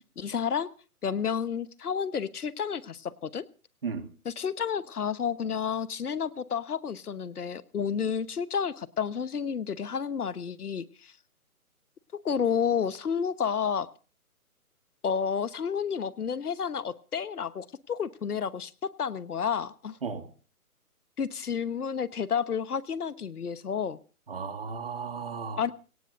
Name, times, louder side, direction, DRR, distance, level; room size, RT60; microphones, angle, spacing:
voice 1, 0.2-0.7 1.0-3.4 4.2-11.1 12.2-13.9 15.0-20.0 21.2-24.0 25.6-25.7, left 7 dB, 80° left, 15 dB, 1.2 m, -30 dB
voice 2, 24.3-25.7, right 5 dB, 40° right, 9 dB, 1.6 m, -35 dB
24.0 x 18.0 x 2.6 m, 0.36 s
hypercardioid pair, 180°, 44 cm